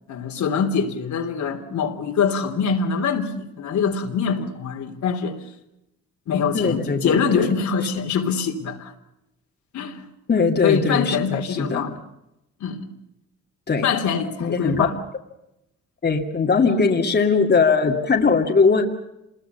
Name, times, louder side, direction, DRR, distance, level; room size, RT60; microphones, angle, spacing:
voice 1, 0.1-5.4 6.3-8.9 9.7-10.0 10.6-12.0 12.6-12.9 13.8-14.9 16.7-16.9, left 6 dB, 70° left, 3.3 m, -24 dB
voice 2, 6.5-7.5 10.3-11.9 13.7-13.9 14.4-14.9 16.0-18.8, left 4 dB, 35° left, 2.4 m, -20 dB
27.0 x 21.5 x 6.9 m
cardioid pair, 90°, 30 cm